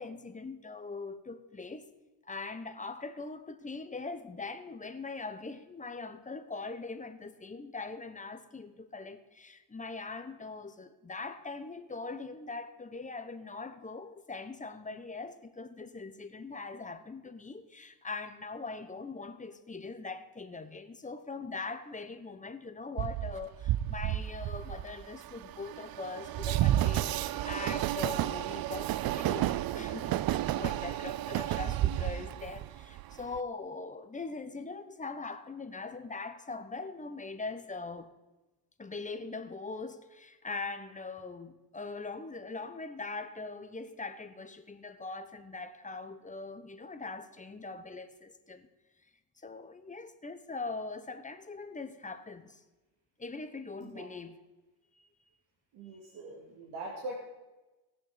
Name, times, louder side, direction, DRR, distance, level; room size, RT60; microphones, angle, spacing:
voice 1, 0.0-1.9 2.2-38.1 38.8-48.7 49.4-52.6 53.2-54.4 55.0-55.1, left 3 dB, 15° left, 0.9 m, -41 dB
Train, 23.0-33.4, right 13 dB, 50° right, 0.5 m, -31 dB
voice 2, 55.7-57.2, right 2 dB, 70° right, 2.5 m, -42 dB
19.0 x 6.7 x 5.1 m
cardioid pair, 105°, 47 cm